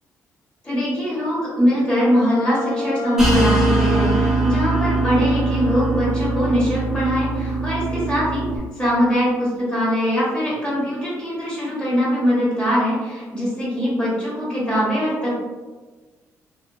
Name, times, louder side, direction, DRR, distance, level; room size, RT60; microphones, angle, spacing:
voice 1, 0.6-8.4 8.8-15.4, equal, 20° left, -8 dB, 1.3 m, -22 dB
sound 1, 2.0-4.4, left 3 dB, 70° left, 0.9 m, -27 dB
sound 2, 3.2-8.6, right 3 dB, 10° right, 0.7 m, -21 dB
2.6 x 2.0 x 2.6 m, 1.3 s
cardioid pair, 120°, 6 cm